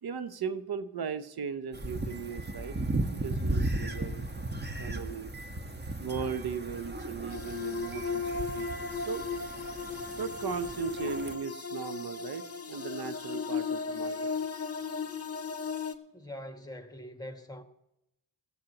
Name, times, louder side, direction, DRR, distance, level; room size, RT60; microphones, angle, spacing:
voice 1, 0.0-2.8 3.1-4.5 4.8-5.3 6.0-9.2 10.2-14.3, right 6 dB, 65° right, 0.9 m, -37 dB
sound 1, 1.7-11.3, right 2 dB, 25° right, 1.4 m, -36 dB
sound 2, 7.3-15.9, left 5 dB, 35° left, 1.5 m, -36 dB
voice 2, 16.1-17.6, left 1 dB, 10° left, 1.9 m, -43 dB
18.5 x 14.5 x 2.9 m
supercardioid pair, 45°, 41 cm